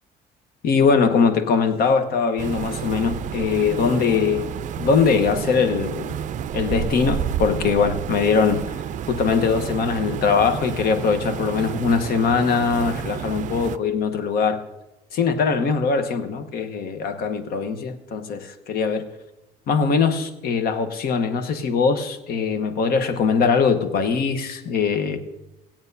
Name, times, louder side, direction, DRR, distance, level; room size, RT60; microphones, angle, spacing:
voice 1, 0.6-4.4 4.8-6.2 6.5-8.6 9.1-14.6 15.1-19.1 19.7-25.2, left 5 dB, 65° left, 9 dB, 1.1 m, -21 dB
sound 1, 2.4-13.8, right 9 dB, 50° right, 0.4 m, -30 dB
17.0 x 8.7 x 2.7 m, 0.98 s
cardioid pair, 110°, 17 cm